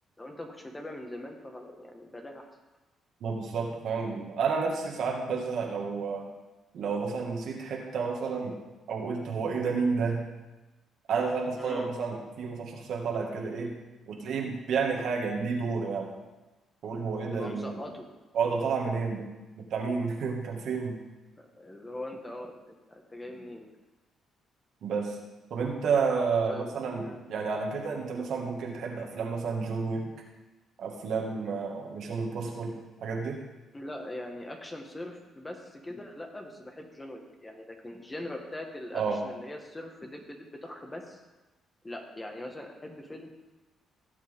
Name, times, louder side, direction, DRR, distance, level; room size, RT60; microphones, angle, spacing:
voice 1, 0.2-2.5 11.6-11.9 17.3-18.1 21.4-23.7 26.5-26.7 27.0-27.2 33.7-41.2 41.8-43.3, left 1 dB, 15° left, 2 dB, 1.8 m, -41 dB
voice 2, 3.2-6.3 6.7-8.6 8.9-10.2 11.1-13.8 14.1-16.1 16.8-17.8 18.3-19.3 19.6-21.0 24.8-25.2 25.5-30.1 30.8-33.4 38.9-39.2, right 5 dB, 70° right, 0 dB, 2.1 m, -30 dB
16.5 x 7.6 x 3.8 m, 1.1 s
cardioid pair, 90°, 0 cm